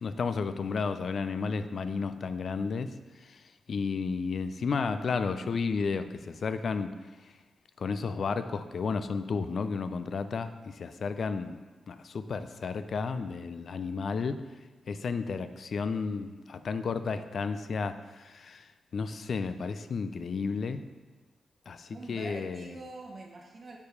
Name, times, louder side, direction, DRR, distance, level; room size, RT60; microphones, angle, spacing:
voice 1, 0.0-2.9 3.3-3.4 3.7-6.9 7.8-11.6 11.9-14.4 14.9-20.8 21.7-22.6, left 5 dB, 60° left, 11 dB, 0.3 m, -32 dB
voice 2, 21.9-23.8, right 2 dB, 55° right, 0 dB, 0.9 m, -44 dB
4.8 x 4.7 x 5.2 m, 1.3 s
supercardioid pair, 45°, 0 cm